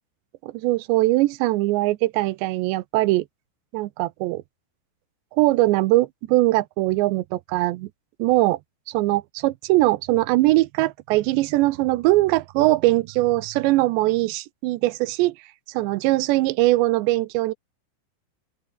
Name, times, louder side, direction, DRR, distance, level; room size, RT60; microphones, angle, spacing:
voice 1, 0.4-3.3 3.7-4.4 5.3-7.9 8.2-8.6 8.9-15.4 15.7-17.5, right 19 dB, 90° right, 3.0 m, -21 dB
open air
omnidirectional pair, 5.0 m